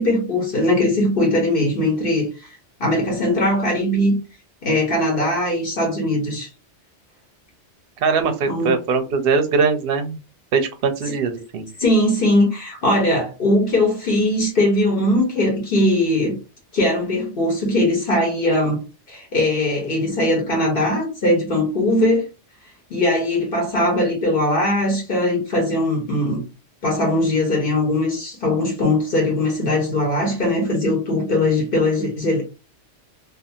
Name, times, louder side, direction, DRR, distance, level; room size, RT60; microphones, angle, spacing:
voice 1, 0.0-4.2 4.6-6.5 8.4-8.7 11.1-11.2 11.8-16.4 16.7-18.8 19.1-22.3 22.9-26.4 26.8-32.4, left 1 dB, 55° left, 1.0 m, -20 dB
voice 2, 8.0-10.2 10.5-11.7, right 5 dB, 65° right, 0.7 m, -21 dB
2.5 x 2.4 x 2.6 m
omnidirectional pair, 1.2 m